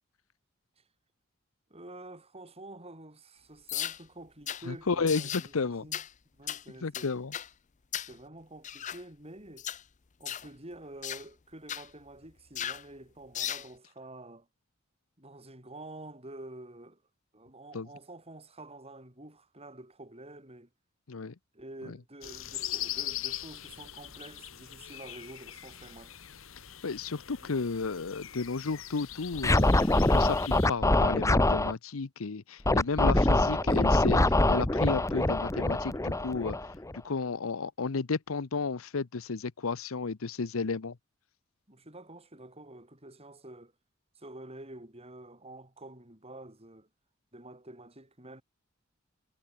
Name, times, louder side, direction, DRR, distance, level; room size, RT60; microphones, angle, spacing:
voice 1, 1.7-6.0 6.3-7.2 8.1-9.7 10.2-14.5 15.2-17.0 17.3-20.7 21.5-26.2 27.4-27.5 33.1-34.6 41.7-43.7 44.1-46.9 47.3-48.4, right 1 dB, 30° right, 6.6 m, -48 dB
sound 1, 3.7-4.0 4.5-4.6 5.1-5.5 5.9-6.1 6.5-6.6 6.9-7.5 7.9-8.1 8.6-9.0 9.6-9.8 10.3-10.5 11.0-11.2 11.7-11.9 12.6-12.8 13.3-13.7, left 10 dB, 35° left, 0.6 m, -36 dB
voice 2, 4.7-5.9 6.8-7.3 17.7-17.9 21.1-21.3 26.8-36.6 37.0-41.0, left 4 dB, 90° left, 0.8 m, -33 dB
sound 2, 22.2-30.7, left 13 dB, 75° left, 1.6 m, -41 dB
Scratching (performance technique), 29.4-31.7 32.6-37.0, left 2 dB, 15° left, 1.0 m, -24 dB
head